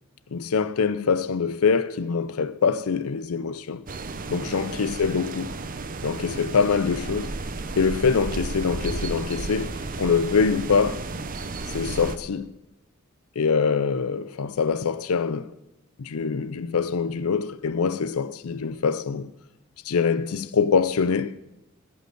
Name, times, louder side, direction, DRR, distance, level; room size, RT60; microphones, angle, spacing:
voice 1, 0.3-3.8 4.3-5.5 6.0-7.3 7.8-11.0 11.7-12.5 13.4-15.5 16.0-19.3 19.8-21.4, left 5 dB, 85° left, 0.5 m, -24 dB
sound 1, 3.9-12.2, right 3 dB, 40° right, 0.8 m, -33 dB
15.5 x 5.5 x 7.8 m
head